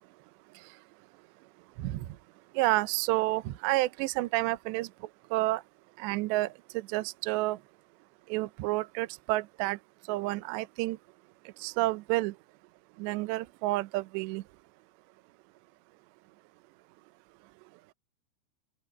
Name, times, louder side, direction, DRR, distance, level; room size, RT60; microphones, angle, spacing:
voice 1, 2.6-4.9 5.3-5.6 6.0-6.5 6.9-7.6 8.3-9.8 10.1-11.0 11.6-12.3 13.0-14.4, right 19 dB, 80° right, 2.5 m, -29 dB
open air
omnidirectional pair, 6.0 m